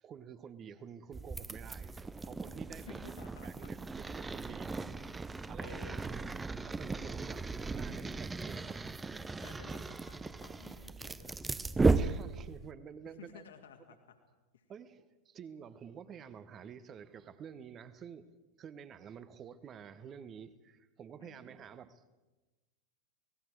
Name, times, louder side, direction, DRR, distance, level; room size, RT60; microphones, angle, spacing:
voice 1, 0.0-3.1 3.4-5.8 6.7-8.8 11.9-13.4 14.7-18.3 18.6-22.2, right 7 dB, 25° right, 1.1 m, -50 dB
sound 1, 1.1-12.7, right 3 dB, 10° right, 0.7 m, -36 dB
voice 2, 2.7-3.7 5.3-6.4 9.4-11.4 13.0-14.2 14.5-14.6 21.2-21.7, left 7 dB, 60° left, 2.5 m, -55 dB
30.0 x 19.5 x 4.8 m
figure-of-eight pair, 90°, 0 cm